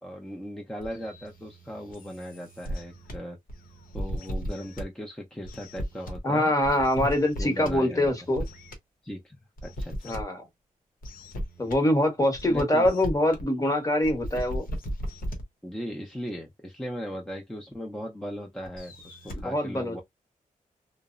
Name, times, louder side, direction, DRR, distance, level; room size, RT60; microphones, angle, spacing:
voice 1, 0.0-3.4 3.9-6.5 7.4-8.1 9.0-9.4 9.6-10.1 12.5-12.9 15.6-20.0, equal, 5° left, 0.6 m, -38 dB
sound 1, 0.8-3.2 3.5-4.8 5.5-6.2 6.6-7.8 8.0-8.7 9.6-10.2 11.0-11.7 12.4-13.4 14.0-15.4 18.7-19.4, equal, 90° left, 0.8 m, -36 dB
voice 2, 6.2-8.5 10.0-10.5 11.6-14.7 19.3-20.0, left 1 dB, 25° left, 1.0 m, -24 dB
2.8 x 2.0 x 2.4 m
cardioid pair, 90°, 14 cm